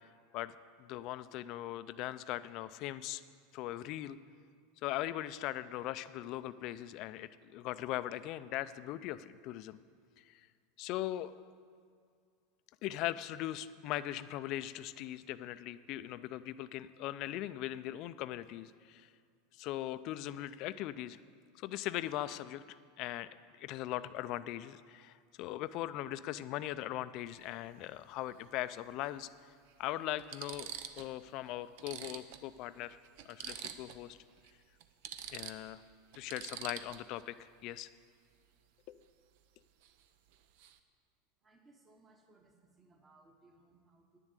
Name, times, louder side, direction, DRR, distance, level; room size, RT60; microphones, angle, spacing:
voice 1, 0.3-3.2 3.5-4.2 4.8-9.8 10.3-10.4 10.8-11.3 12.8-19.1 19.6-21.2 21.6-23.3 23.6-29.3 29.8-33.0 33.3-34.2 35.3-35.8 36.2-37.9 38.9-39.0, left 14 dB, 50° left, 14 dB, 0.4 m, -40 dB
sound 1, 27.3-27.4 28.9-29.0 29.7-29.8 30.2-31.1 31.4-31.5 31.8-34.1 34.4-34.5 34.8-37.2 39.8-40.0 40.3-40.8, right 9 dB, 65° right, 0.7 m, -46 dB
voice 2, 41.4-44.2, right 2 dB, 20° right, 2 dB, 1.2 m, -64 dB
9.9 x 7.2 x 8.3 m, 2.1 s
supercardioid pair, 140°, 0 cm